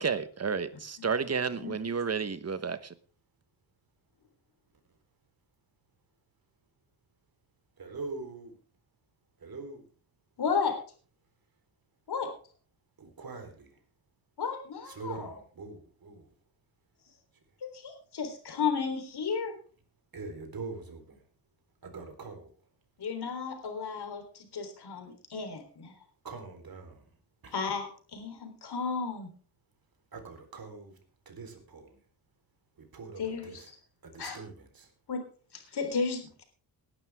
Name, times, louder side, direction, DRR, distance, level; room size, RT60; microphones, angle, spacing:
voice 1, 0.0-2.9, right 5 dB, 35° right, 13 dB, 1.2 m, -31 dB
voice 2, 1.6-1.9 10.4-10.8 12.1-12.3 14.4-15.3 17.6-19.5 23.0-25.9 27.5-29.3 33.2-33.6 34.2-34.4 35.1-35.2 35.5-36.4, left 5 dB, 65° left, 5 dB, 3.9 m, -33 dB
voice 3, 7.8-8.6 9.4-9.8 13.0-13.8 14.8-16.3 20.1-21.2 21.8-22.5 26.2-27.0 27.4-27.5 30.1-31.0 31.3-32.0 32.8-33.7 34.0-34.9, right 4 dB, 55° right, 5 dB, 4.0 m, -43 dB
19.0 x 11.5 x 3.6 m, 0.40 s
wide cardioid pair, 130°, 42 cm